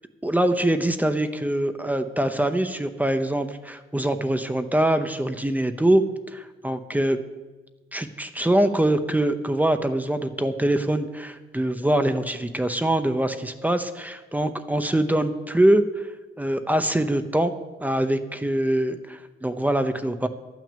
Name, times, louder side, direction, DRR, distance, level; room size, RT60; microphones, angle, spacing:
voice 1, 0.2-6.0 6.3-7.2 7.9-16.1 16.4-17.5 17.8-20.3, right 1 dB, 10° right, 8 dB, 0.8 m, -23 dB
11.5 x 6.2 x 8.7 m, 1.2 s
cardioid pair, 90°, 20 cm